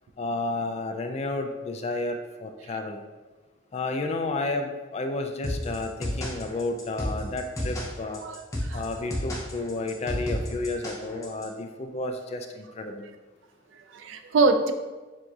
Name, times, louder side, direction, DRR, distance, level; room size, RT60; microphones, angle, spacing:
voice 1, 0.2-3.0 3.7-8.2 8.7-13.1, left 2 dB, 35° left, 5 dB, 0.3 m, -31 dB
sound 1, 5.4-11.4, equal, 15° left, 0.8 m, -32 dB
voice 2, 8.2-9.1 13.7-14.7, right 3 dB, 85° right, 7 dB, 0.4 m, -26 dB
7.4 x 2.6 x 2.4 m, 1.3 s
head